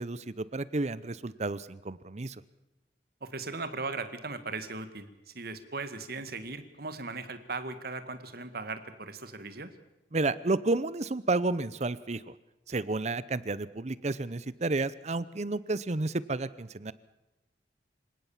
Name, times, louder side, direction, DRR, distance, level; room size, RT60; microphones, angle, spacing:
voice 1, 0.0-2.4 10.1-12.3 12.7-16.9, right 2 dB, 40° right, 18 dB, 0.7 m, -31 dB
voice 2, 3.2-9.7, right 3 dB, 55° right, 10 dB, 1.9 m, -38 dB
26.5 x 17.5 x 7.3 m, 0.98 s
head